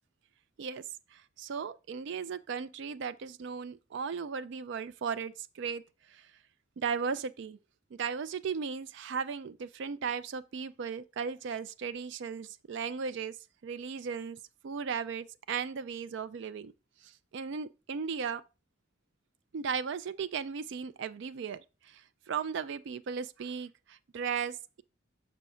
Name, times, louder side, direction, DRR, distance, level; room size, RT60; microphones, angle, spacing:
voice 1, 1.1-5.8 6.1-6.2 6.8-7.6 8.0-13.4 13.6-16.7 17.0-18.4 19.5-21.6 21.9-24.8, right 6 dB, 60° right, 0.4 m, -36 dB
6.2 x 3.4 x 5.5 m
head